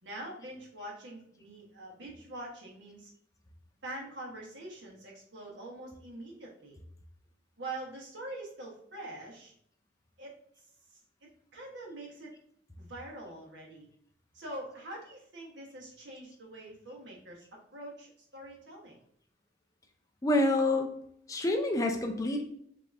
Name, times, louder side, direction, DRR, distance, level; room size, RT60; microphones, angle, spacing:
voice 1, 0.0-3.1 3.8-6.8 7.6-9.5 10.2-10.3 10.9-12.3 12.8-13.9 14.3-17.4 17.7-19.0, right 1 dB, 80° right, -2 dB, 1.2 m, -44 dB
voice 2, 20.2-20.9 21.3-22.5, left 1 dB, 20° left, 3 dB, 0.4 m, -27 dB
4.8 x 2.8 x 2.5 m, 0.69 s
head